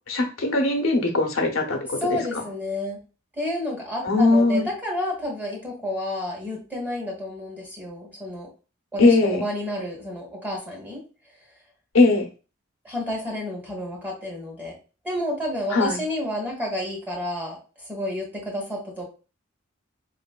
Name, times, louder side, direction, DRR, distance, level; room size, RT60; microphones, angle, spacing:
voice 1, 0.1-2.4 4.0-4.7 9.0-9.4 11.9-12.3 15.7-16.0, left 2 dB, 85° left, 4 dB, 0.9 m, -20 dB
voice 2, 2.0-3.0 3.3-8.5 8.9-11.0 12.8-14.7 15.0-19.0, left 1 dB, 10° right, -2 dB, 1.7 m, -30 dB
5.0 x 3.2 x 2.2 m, 0.33 s
head